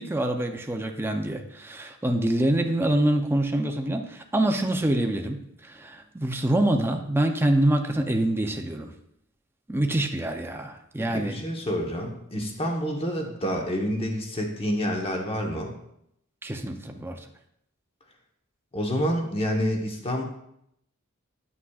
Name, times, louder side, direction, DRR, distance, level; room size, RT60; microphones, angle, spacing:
voice 1, 0.0-5.4 5.6-8.9 9.7-11.5 16.4-17.2, right 1 dB, 10° right, 3 dB, 0.5 m, -25 dB
voice 2, 11.1-15.7 18.7-20.2, equal, 25° left, 1 dB, 1.1 m, -28 dB
9.5 x 5.9 x 2.4 m, 0.75 s
head